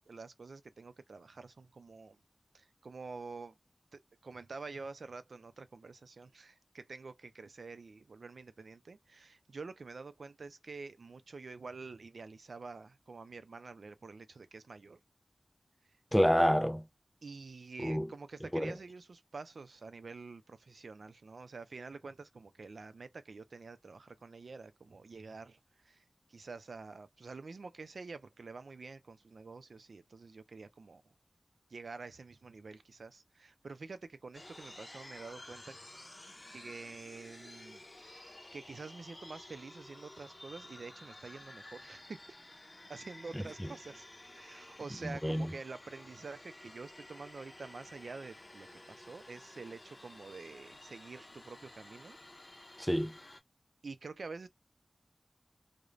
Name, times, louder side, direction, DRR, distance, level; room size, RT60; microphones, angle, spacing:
voice 1, 0.0-2.2 2.5-3.6 3.9-15.0 17.2-31.0 31.7-35.8 36.5-42.2 42.9-44.1 44.4-52.2 52.7-52.8 53.8-54.5, right 4 dB, 85° right, 0.4 m, -48 dB
voice 2, 16.1-16.9 17.8-18.1 18.5-18.7 45.0-45.5 52.8-53.1, equal, 5° left, 0.4 m, -28 dB
sound 1, 34.3-53.4, left 1 dB, 40° left, 0.7 m, -53 dB
2.4 x 2.0 x 3.0 m
wide cardioid pair, 50°, 0 cm